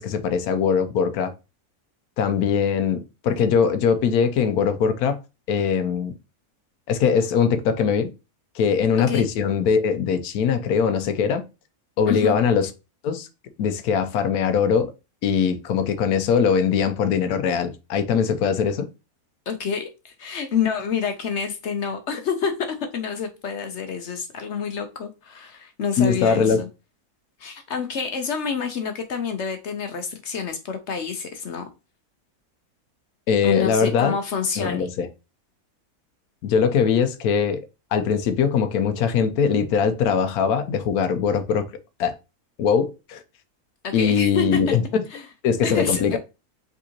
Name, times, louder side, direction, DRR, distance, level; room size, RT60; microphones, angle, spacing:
voice 1, 0.0-1.3 2.2-5.2 5.5-6.2 6.9-8.1 8.5-11.4 12.0-12.7 13.0-13.3 13.6-14.9 15.2-18.9 26.0-26.6 33.3-34.1 34.6-35.1 36.4-37.6 37.9-41.7 42.0-42.2 42.6-43.2 43.9-45.0 45.4-46.2, left 6 dB, 80° left, 1.1 m, -21 dB
voice 2, 12.1-12.4 19.5-26.7 27.4-31.6 33.4-34.9 43.8-44.8 45.1-45.3 45.6-46.2, left 6 dB, 60° left, 0.8 m, -28 dB
5.1 x 3.6 x 2.8 m
omnidirectional pair, 1.6 m